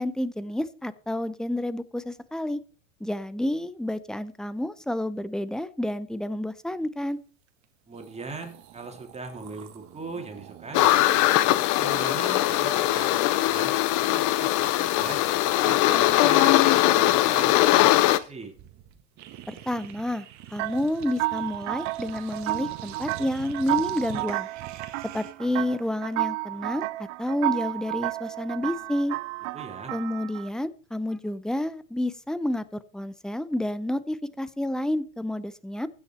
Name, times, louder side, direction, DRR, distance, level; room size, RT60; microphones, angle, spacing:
voice 1, 0.0-2.6 3.0-7.2 19.5-20.2 20.5-24.5 25.1-29.2 29.9-35.9, left 1 dB, ahead, 16 dB, 0.6 m, -29 dB
sound 1, 7.6-7.7 7.9-14.1 14.4-25.5, right 12 dB, 45° right, 1.7 m, -46 dB
voice 2, 7.9-11.0 11.7-18.5 29.5-29.9, right 3 dB, 15° right, 4 dB, 2.7 m, -39 dB
sound 2, 10.7-18.2, left 15 dB, 50° left, 0.8 m, -21 dB
sound 3, 20.6-30.5, right 20 dB, 70° right, 0.6 m, -32 dB
16.0 x 6.1 x 4.3 m, 0.39 s
hypercardioid pair, 90°, 38 cm